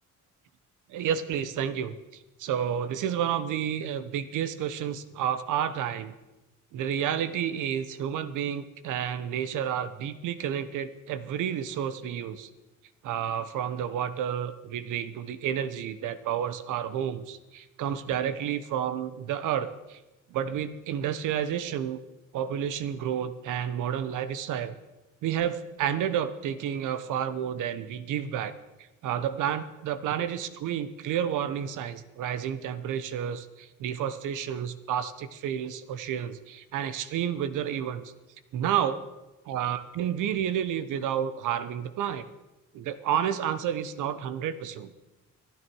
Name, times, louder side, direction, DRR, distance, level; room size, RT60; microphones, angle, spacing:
voice 1, 0.9-2.0 2.4-6.1 6.7-12.5 13.0-20.0 20.3-22.0 22.3-24.7 25.2-28.5 29.0-38.1 38.5-39.0 39.5-42.2 42.7-44.9, right 9 dB, 85° right, 13 dB, 1.1 m, -30 dB
25.0 x 9.6 x 4.7 m, 1.0 s
cardioid pair, 90°, 30 cm